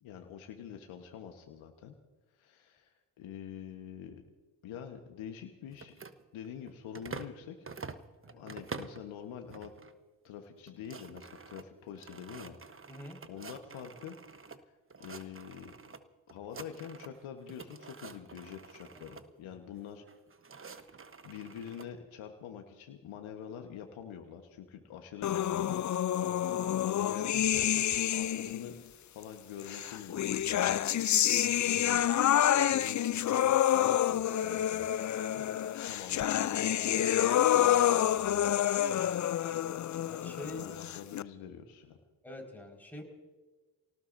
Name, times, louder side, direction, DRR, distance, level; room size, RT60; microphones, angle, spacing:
voice 1, 0.0-2.0 2.4-4.2 4.6-6.0 6.3-7.6 8.3-9.7 10.2-12.6 13.3-14.2 15.0-15.7 16.3-20.0 21.2-25.8 26.9-28.8 29.1-30.8 31.6-32.0 32.5-34.9 35.4-35.5 35.9-38.6 40.4-42.0, left 8 dB, 75° left, 4 dB, 1.4 m, -45 dB
sound 1, 5.7-7.4 7.7-9.1 9.5-9.9 10.3-10.4 10.6-14.6 14.9-16.0 16.3-17.2 17.5-19.3 20.1-21.9, right 4 dB, 25° right, 1.2 m, -47 dB
voice 2, 12.9-13.2 26.2-26.4 31.4-31.6 35.4-35.6 38.9-39.2 40.1-40.6 42.2-43.0, left 1 dB, 5° left, 0 dB, 5.2 m, -46 dB
sound 2, 25.2-28.7 29.7-41.2, left 11 dB, 40° left, 0.5 m, -28 dB
29.0 x 18.5 x 2.7 m, 1.3 s
hypercardioid pair, 45°, 49 cm